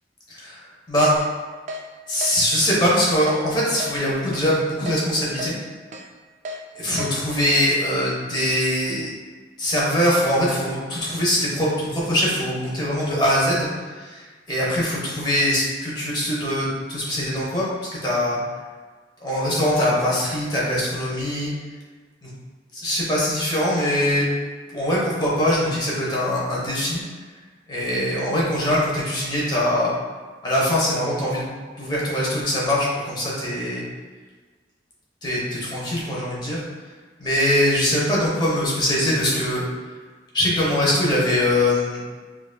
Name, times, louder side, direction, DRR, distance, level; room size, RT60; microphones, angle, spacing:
voice 1, 0.3-1.1 2.1-5.5 6.7-9.1 9.6-17.6 18.0-18.4 19.2-21.5 22.2-22.3 22.7-24.3 24.7-27.0 27.7-29.9 30.4-33.9 35.2-36.6 37.2-39.6 40.3-42.0, left 1 dB, 25° left, -6 dB, 1.0 m, -22 dB
Keyboard (musical), 1.2-1.3 1.7-1.8 2.2-2.4 2.7-2.9 3.3-3.4 3.8-3.9 4.3-4.5 4.9-5.0 5.4-5.5 5.9-6.1 6.5-6.6 7.0-7.1, equal, 40° right, 0.4 m, -32 dB
5.6 x 2.7 x 2.2 m, 1.4 s
head